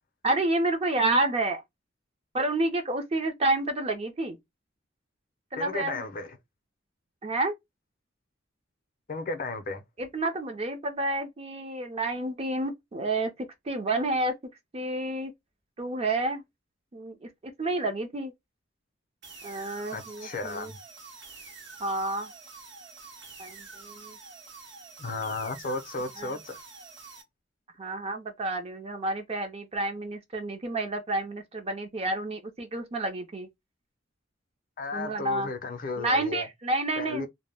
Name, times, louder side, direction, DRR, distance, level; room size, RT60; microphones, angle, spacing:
voice 1, 0.2-1.6 2.3-4.4 5.5-6.1 7.2-7.5 10.0-13.3 13.7-14.4 14.7-15.3 15.8-16.4 16.9-18.3 19.4-20.7 21.8-22.3 23.4-24.2 26.2-26.3 27.8-33.5 34.9-35.5 36.0-37.3, right 2 dB, 30° right, 0.5 m, -29 dB
voice 2, 5.6-6.4 9.1-9.8 19.9-20.8 25.0-26.6 34.8-36.5 37.0-37.3, left 3 dB, 45° left, 0.5 m, -34 dB
sound 1, 19.2-27.2, right 4 dB, 60° right, 0.8 m, -47 dB
2.1 x 2.0 x 3.2 m
head